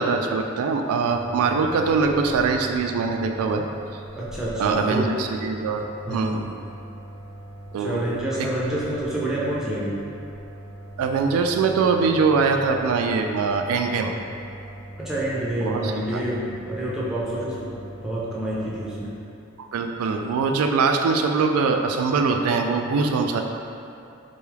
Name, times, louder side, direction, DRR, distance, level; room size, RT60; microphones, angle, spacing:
voice 1, 0.0-3.6 4.6-6.5 7.7-8.5 11.0-14.1 15.6-16.2 19.7-23.4, right 4 dB, 85° right, 8 dB, 0.3 m, -23 dB
sound 1, 1.1-19.1, right 1 dB, 70° left, 1.1 m, -41 dB
voice 2, 4.2-5.1 6.0-6.3 7.8-10.0 15.0-17.7 18.0-19.1, right 1 dB, 5° right, -8 dB, 0.6 m, -28 dB
3.9 x 2.3 x 3.2 m, 2.6 s
head